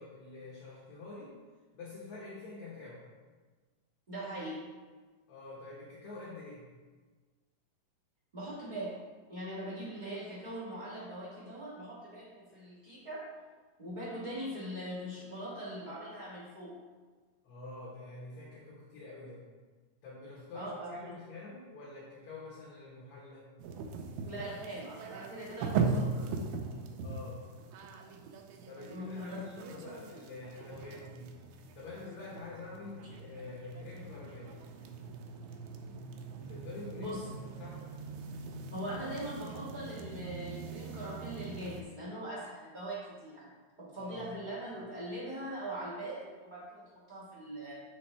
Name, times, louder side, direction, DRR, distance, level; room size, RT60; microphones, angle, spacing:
voice 1, 0.0-1.4 1.7-3.0 5.3-6.7 17.4-19.4 20.0-23.5 27.0-27.4 28.7-31.3 31.7-34.5 36.5-37.2 37.4-37.9 44.0-44.2, left 3 dB, 65° left, -7 dB, 2.3 m, -47 dB
voice 2, 4.1-4.6 8.3-9.0 9.3-13.2 13.8-16.7 20.5-21.1 24.2-26.3 28.9-29.4 37.0-37.2 38.7-43.5 43.8-47.8, right 1 dB, 65° right, -9 dB, 0.4 m, -41 dB
sound 1, 23.6-41.8, right 4 dB, 90° right, 2.4 m, -40 dB
7.4 x 5.9 x 3.3 m, 1.4 s
omnidirectional pair, 3.9 m